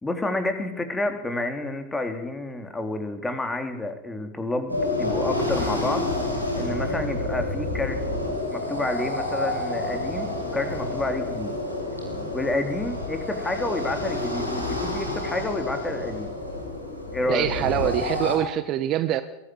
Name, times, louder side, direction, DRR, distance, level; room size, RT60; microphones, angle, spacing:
voice 1, 0.0-6.1 6.5-8.0 8.5-11.5 12.3-16.3 17.1-18.0, left 2 dB, 10° left, 6 dB, 3.9 m, -29 dB
sound 1, 4.7-18.4, left 2 dB, 90° left, 7.5 m, -29 dB
voice 2, 17.3-19.2, right 12 dB, 35° right, 13 dB, 1.2 m, -24 dB
22.5 x 17.5 x 9.6 m, 0.95 s
figure-of-eight pair, 90°, 0 cm